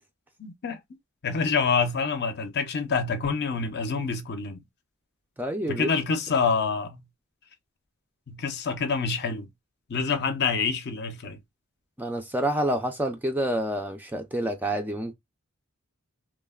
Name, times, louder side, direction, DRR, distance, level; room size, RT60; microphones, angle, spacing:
voice 1, 0.4-0.8 1.2-4.6 5.7-7.0 8.3-9.5 9.9-11.4, left 5 dB, 50° left, 0.6 m, -27 dB
voice 2, 5.4-5.9 12.0-15.1, right 1 dB, 10° right, 0.4 m, -28 dB
3.1 x 2.0 x 2.3 m
head